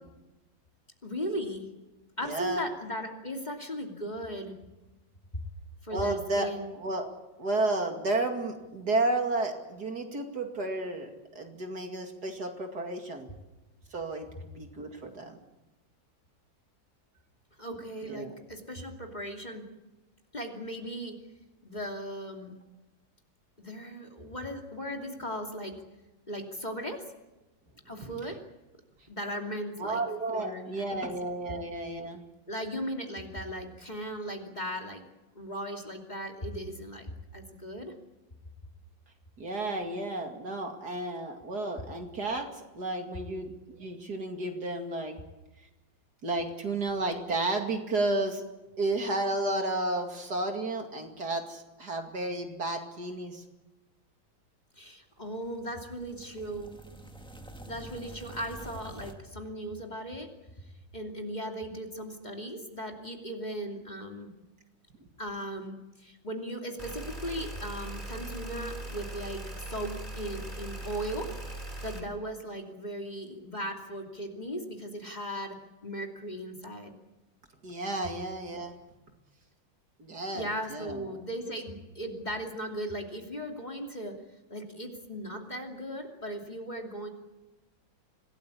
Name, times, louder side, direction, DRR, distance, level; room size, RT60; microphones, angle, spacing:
voice 1, 1.0-1.7 2.2-4.5 5.8-6.7 17.6-19.7 20.3-21.2 21.6-22.6 23.6-25.8 26.3-27.0 27.8-28.4 29.1-30.0 30.3-31.1 32.5-35.0 35.3-37.9 54.7-56.7 57.7-60.3 60.6-64.3 65.2-71.3 71.8-76.9 80.3-84.2 84.5-87.1, equal, 20° left, 2 dB, 2.8 m, -37 dB
voice 2, 2.2-2.7 5.9-6.5 6.7-7.1 7.4-13.3 13.9-15.4 18.0-18.3 28.0-28.1 29.8-32.2 39.4-42.5 42.7-45.2 46.2-48.4 48.8-53.4 77.6-78.7 80.0-81.2, right 2 dB, 55° right, 4 dB, 2.9 m, -32 dB
sound 1, 55.3-59.1, right 2 dB, 5° left, 1.7 m, -47 dB
sound 2, 66.8-72.0, right 1 dB, 25° right, 3.6 m, -40 dB
26.0 x 18.0 x 8.6 m, 1.1 s
omnidirectional pair, 2.1 m